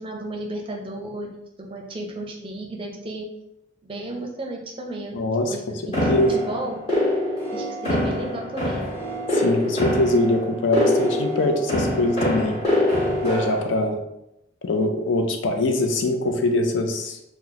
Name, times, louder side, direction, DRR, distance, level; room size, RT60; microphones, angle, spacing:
voice 1, 0.0-3.2 3.8-5.2 5.5-6.8 7.5-8.9, right 1 dB, 25° right, 0 dB, 0.5 m, -33 dB
voice 2, 5.1-5.6 5.8-6.3 9.3-12.6 13.2-14.0 14.6-17.2, left 2 dB, 70° left, 4 dB, 0.4 m, -23 dB
sound 1, 5.9-13.6, left 1 dB, 35° left, 1.5 m, -24 dB
2.8 x 2.0 x 3.8 m, 0.84 s
head